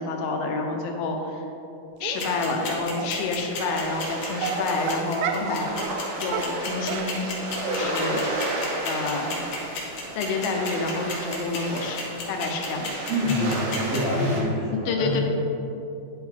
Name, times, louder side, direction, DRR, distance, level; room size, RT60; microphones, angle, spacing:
voice 1, 0.0-1.4 2.0-7.3 7.7-8.3 8.8-9.3 10.1-12.0 12.3-13.0 14.7-15.2, left 3 dB, 85° left, 3 dB, 2.6 m, -28 dB
Dog, 2.0-2.4 3.0-3.1 3.9-4.0 4.4-5.5 5.8-6.0 6.3-7.8 8.1-8.2 8.5-8.6 8.9-9.1 9.4-9.5 9.9-10.0 10.2-10.3, right 7 dB, 85° right, 1.9 m, -32 dB
sound 1, 2.2-14.0, left 5 dB, 60° left, 2.2 m, -33 dB
sound 2, 2.2-14.4, right 1 dB, 65° right, 1.5 m, -33 dB
voice 2, 13.1-15.2, left 1 dB, 35° right, -12 dB, 1.3 m, -26 dB
10.0 x 3.9 x 4.4 m, 2.8 s
omnidirectional pair, 4.2 m